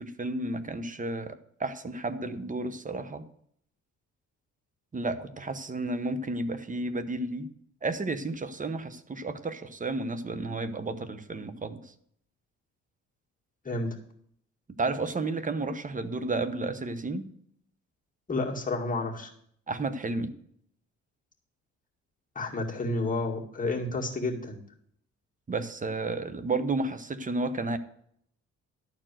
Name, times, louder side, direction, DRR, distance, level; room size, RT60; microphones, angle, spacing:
voice 1, 0.0-3.2 4.9-7.5 7.8-11.9 14.8-17.2 19.7-20.3 25.5-27.8, right 2 dB, 25° right, 12 dB, 0.9 m, -32 dB
voice 2, 18.3-19.3 22.4-24.6, left 2 dB, 25° left, -1 dB, 2.2 m, -30 dB
12.0 x 4.6 x 7.6 m, 0.67 s
cardioid pair, 90°, 30 cm